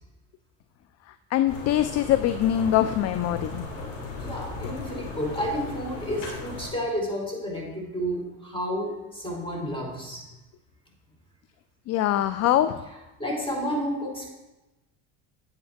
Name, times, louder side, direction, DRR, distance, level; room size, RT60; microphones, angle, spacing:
voice 1, 1.3-3.7 11.9-12.8, left 12 dB, 40° left, 12 dB, 0.4 m, -23 dB
sound 1, 1.5-6.7, left 3 dB, 85° left, 2.9 m, -36 dB
voice 2, 4.2-10.3 13.2-14.3, equal, 10° left, -1 dB, 3.3 m, -31 dB
9.5 x 8.2 x 3.5 m, 1.0 s
supercardioid pair, 90°, 45 cm